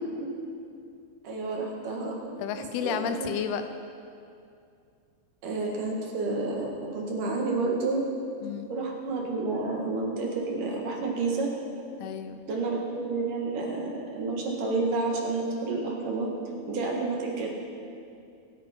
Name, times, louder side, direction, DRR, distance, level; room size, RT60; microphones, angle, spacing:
voice 1, 1.2-2.2 2.8-3.3 5.4-8.1 8.7-11.5 12.5-16.3 16.7-17.5, right 3 dB, 60° right, -1 dB, 3.0 m, -30 dB
voice 2, 2.4-3.7 8.4-8.7 12.0-12.4, left 7 dB, 80° left, 8 dB, 2.6 m, -31 dB
25.5 x 9.5 x 4.4 m, 2.4 s
omnidirectional pair, 4.6 m